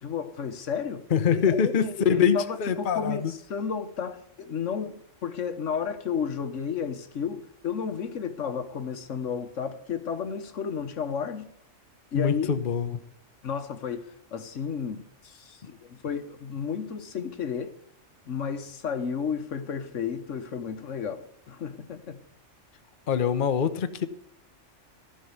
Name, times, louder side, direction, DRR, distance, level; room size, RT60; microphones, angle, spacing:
voice 1, 0.0-11.5 12.1-12.5 13.4-14.1 14.3-17.8 18.3-22.2, left 6 dB, 75° left, 1.4 m, -32 dB
voice 2, 1.1-3.3 12.1-13.0 23.1-24.1, left 7 dB, 45° left, 0.9 m, -24 dB
15.0 x 5.7 x 9.4 m
omnidirectional pair, 1.3 m